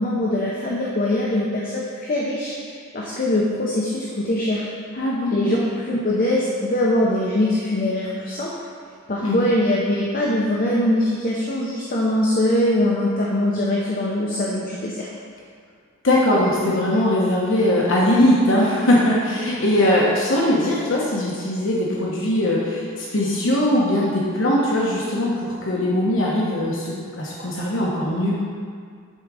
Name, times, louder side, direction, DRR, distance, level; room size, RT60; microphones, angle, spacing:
voice 1, 0.0-2.5 2.9-4.6 5.3-8.6 9.1-15.1, left 1 dB, 40° left, -4 dB, 0.8 m, -22 dB
voice 2, 4.9-5.5 9.2-9.4 16.0-28.4, left 1 dB, 65° left, -5 dB, 1.1 m, -20 dB
10.0 x 3.8 x 4.8 m, 2.1 s
head